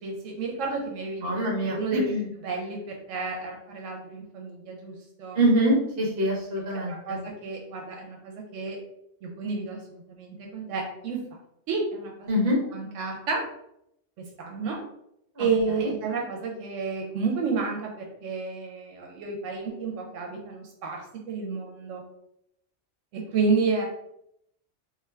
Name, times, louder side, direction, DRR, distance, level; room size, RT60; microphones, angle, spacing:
voice 1, 0.0-1.3 1.6-2.1 2.4-4.9 5.2-5.4 6.7-8.8 9.2-11.2 11.7-12.4 12.7-13.5 14.2-14.8 15.4-21.0 21.3-22.0 23.1-23.9, right 4 dB, 85° right, 1 dB, 0.9 m, -30 dB
voice 2, 1.2-2.3 5.3-7.2 12.3-12.6 15.4-15.5 15.8-15.9, right 1 dB, 55° right, -2 dB, 1.0 m, -24 dB
2.5 x 2.4 x 3.2 m, 0.78 s
omnidirectional pair, 1.3 m